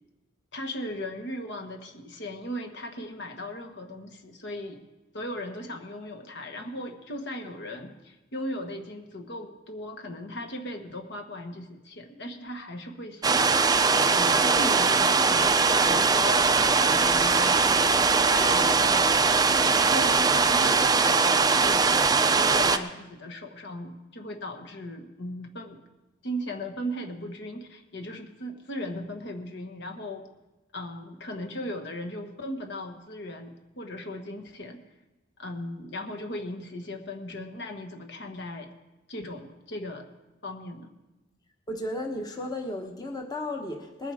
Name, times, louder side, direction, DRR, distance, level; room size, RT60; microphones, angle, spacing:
voice 1, 0.5-4.8 5.1-25.8 26.2-30.3 30.7-34.8 35.4-38.7 39.1-40.1 40.4-40.9, left 1 dB, 60° left, 4 dB, 1.4 m, -37 dB
sound 1, 13.2-22.8, right 4 dB, 20° right, 0.5 m, -21 dB
voice 2, 41.7-44.1, left 1 dB, 20° left, 2 dB, 1.1 m, -34 dB
20.5 x 7.6 x 4.9 m, 1.0 s
head